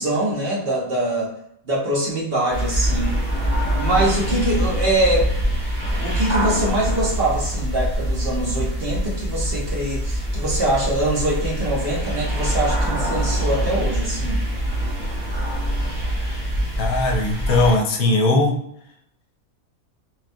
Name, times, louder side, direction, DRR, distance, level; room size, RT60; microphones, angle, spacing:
voice 1, 0.0-1.4 1.7-3.2 3.8-5.3 6.0-14.4, right 1 dB, 50° right, -4 dB, 0.9 m, -23 dB
sound 1, 2.5-17.8, equal, 20° right, 0.7 m, -24 dB
voice 2, 16.8-18.5, left 2 dB, 85° left, 2 dB, 1.1 m, -19 dB
4.1 x 2.1 x 2.5 m, 0.73 s
omnidirectional pair, 1.5 m